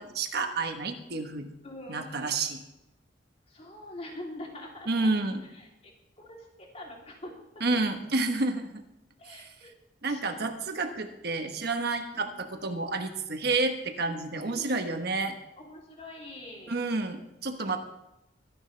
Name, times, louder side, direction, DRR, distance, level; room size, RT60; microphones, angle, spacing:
voice 1, 0.0-1.5 1.9-2.6 4.9-5.4 7.6-8.8 9.3-9.5 10.0-15.4 16.7-17.8, right 3 dB, 60° right, 6 dB, 1.2 m, -30 dB
voice 2, 1.6-2.3 3.5-5.1 5.5-5.6 6.2-7.3 9.2-9.7 10.0-10.5 12.1-12.3 14.4-14.8 15.6-16.8, left 1 dB, 35° left, -1 dB, 3.1 m, -44 dB
22.0 x 10.5 x 3.3 m, 0.90 s
head